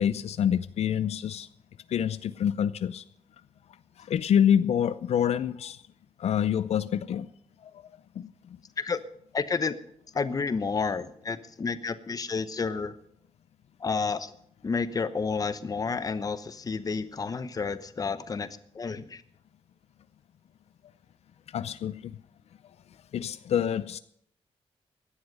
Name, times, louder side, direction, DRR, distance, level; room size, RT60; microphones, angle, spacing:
voice 1, 0.0-1.5 1.9-3.0 4.0-5.8 6.2-7.3 8.2-8.3 21.5-22.1 23.1-24.0, left 9 dB, 85° left, 0.5 m, -26 dB
voice 2, 9.3-9.7 10.1-12.9 13.8-14.3 14.6-19.2, left 5 dB, 35° left, 0.9 m, -30 dB
17.0 x 11.5 x 5.4 m
wide cardioid pair, 135°, 11 cm